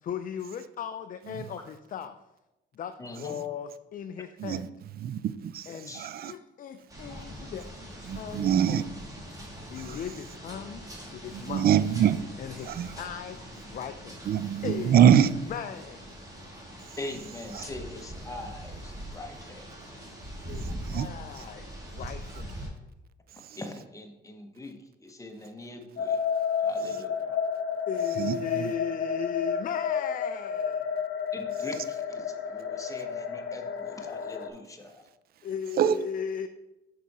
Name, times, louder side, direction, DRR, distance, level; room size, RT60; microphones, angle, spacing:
voice 1, 0.0-2.2 2.7-4.7 5.7-6.0 6.2-7.7 8.2-8.9 9.7-10.8 11.1-11.7 12.4-14.2 14.6-16.1 20.5-20.7 20.9-22.6 26.7-27.0 27.9-31.0 35.4-36.5, left 8 dB, 45° left, 0.4 m, -37 dB
voice 2, 3.0-3.4 5.7-6.1 15.0-15.1 17.0-19.7 23.5-26.2 26.6-27.4 31.3-35.1, left 2 dB, 15° left, 0.9 m, -42 dB
voice 3, 5.0-6.3 8.1-8.8 9.8-10.0 11.3-12.2 12.6-12.9 14.3-15.3 17.5-17.6 20.6-21.1 21.4-21.5 23.5-23.6 28.2-28.7 35.8-36.0, right 9 dB, 50° right, 0.4 m, -24 dB
sound 1, 6.9-22.7, right 1 dB, 15° right, 1.9 m, -42 dB
sound 2, 26.0-34.5, left 6 dB, 65° left, 0.7 m, -31 dB
6.1 x 4.7 x 4.1 m
cardioid pair, 90°, 20 cm